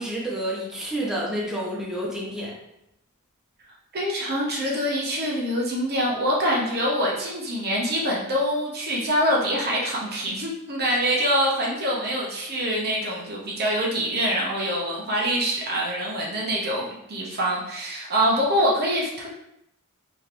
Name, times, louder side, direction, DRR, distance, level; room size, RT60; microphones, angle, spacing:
voice 1, 0.0-2.5, right 1 dB, 5° right, -6 dB, 0.9 m, -29 dB
voice 2, 3.9-19.3, equal, 45° right, -3 dB, 0.8 m, -25 dB
5.0 x 2.9 x 2.5 m, 0.80 s
head